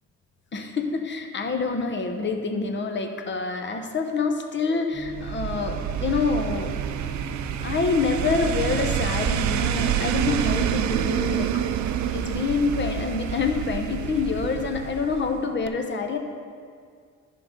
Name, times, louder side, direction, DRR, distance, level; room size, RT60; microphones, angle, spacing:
voice 1, 0.5-6.7 7.6-11.6 12.1-16.2, left 4 dB, 40° left, 5 dB, 0.9 m, -26 dB
sound 1, 4.9-11.8, right 2 dB, 10° right, 0.8 m, -41 dB
sound 2, 5.0-15.4 15.7-15.8, right 10 dB, 70° right, 0.5 m, -27 dB
11.0 x 3.9 x 6.5 m, 2.2 s
cardioid pair, 90°, 30 cm